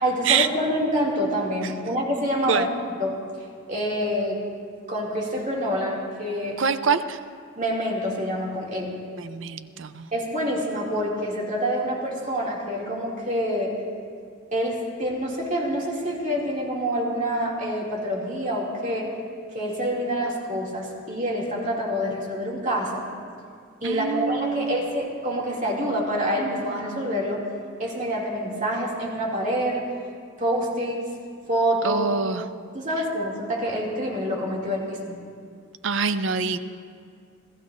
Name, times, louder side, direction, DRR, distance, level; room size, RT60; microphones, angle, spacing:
voice 1, 0.0-2.7 3.0-3.2 3.7-4.4 4.9-6.6 7.6-8.9 10.1-13.7 14.5-19.1 19.5-23.0 23.8-27.4 27.8-29.8 30.4-31.0 31.5-32.0 32.7-35.1, equal, 40° right, -3 dB, 2.5 m, -26 dB
voice 2, 6.6-7.2 9.2-10.1 23.8-24.8 31.8-32.4 35.8-36.6, right 5 dB, 65° right, 11 dB, 0.6 m, -25 dB
28.0 x 14.5 x 2.6 m, 2.2 s
head